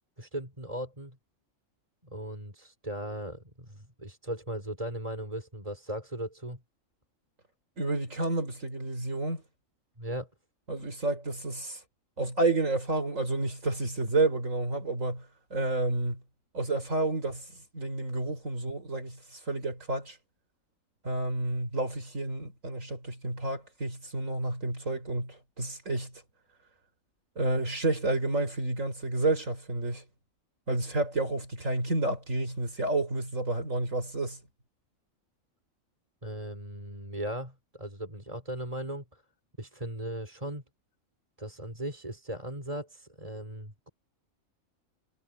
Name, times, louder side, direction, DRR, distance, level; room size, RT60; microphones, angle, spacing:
voice 1, 0.2-1.2 2.0-6.6 10.0-10.3 36.2-39.2 39.6-40.6 41.4-43.9, right 1 dB, 25° right, 4.8 m, -38 dB
voice 2, 7.8-9.4 10.7-11.8 12.2-15.3 15.5-16.2 16.5-20.2 21.0-26.1 27.4-30.0 30.7-34.4, right 2 dB, 70° right, 5.5 m, -30 dB
omnidirectional pair, 1.4 m